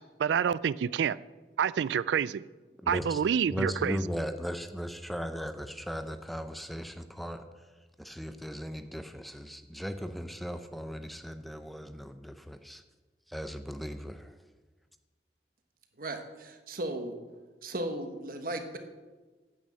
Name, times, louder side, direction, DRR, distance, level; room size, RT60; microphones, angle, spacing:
voice 1, 0.2-1.2 1.6-2.4 2.9-4.0, right 7 dB, 80° right, 19 dB, 0.3 m, -27 dB
voice 2, 2.8-3.2 3.5-7.7 8.0-12.8 13.3-14.4, equal, ahead, 8 dB, 0.5 m, -37 dB
voice 3, 16.0-17.1 17.6-18.8, right 1 dB, 50° right, 6 dB, 1.3 m, -36 dB
9.0 x 8.9 x 7.6 m, 1.3 s
head